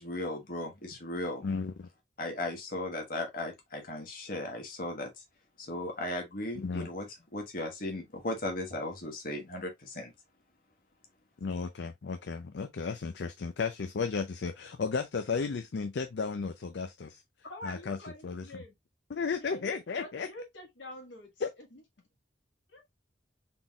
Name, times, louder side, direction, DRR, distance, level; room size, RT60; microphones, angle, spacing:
voice 1, 0.0-1.4 2.2-5.1 5.6-7.1 7.3-10.1, left 1 dB, 50° left, 1.2 m, -36 dB
voice 2, 1.4-1.9 6.6-6.9 11.4-17.2 17.6-18.0 18.2-18.5 19.1-20.3 21.4-21.5, left 5 dB, 70° left, 0.5 m, -34 dB
voice 3, 17.4-18.7 19.4-21.8 22.7-22.8, left 1 dB, 90° left, 1.8 m, -46 dB
4.0 x 3.7 x 2.3 m
head